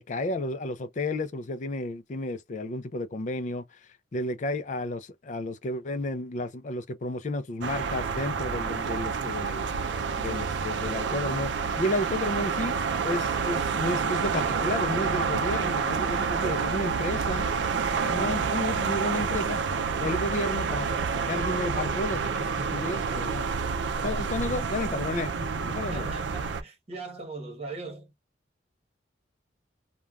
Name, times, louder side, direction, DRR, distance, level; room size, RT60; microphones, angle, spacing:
voice 1, 0.0-9.6 10.2-12.8 13.0-17.5 18.0-19.6 20.0-23.5 24.0-26.1, left 1 dB, 45° left, 0.4 m, -32 dB
sound 1, 7.6-26.6, right 5 dB, 85° right, 0.4 m, -28 dB
voice 2, 16.1-16.8 25.9-28.1, right 3 dB, 35° right, 1.2 m, -39 dB
3.2 x 2.2 x 2.3 m
head